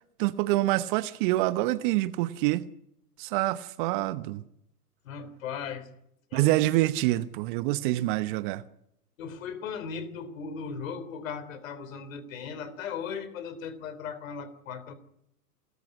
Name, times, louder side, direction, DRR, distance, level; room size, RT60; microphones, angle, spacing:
voice 1, 0.2-2.6 3.2-4.4 6.3-8.6, right 17 dB, 35° right, 0.9 m, -26 dB
voice 2, 5.0-5.9 6.3-6.5 9.2-14.9, left 6 dB, 55° left, 3.6 m, -37 dB
27.5 x 13.5 x 9.8 m
figure-of-eight pair, 115°, 47 cm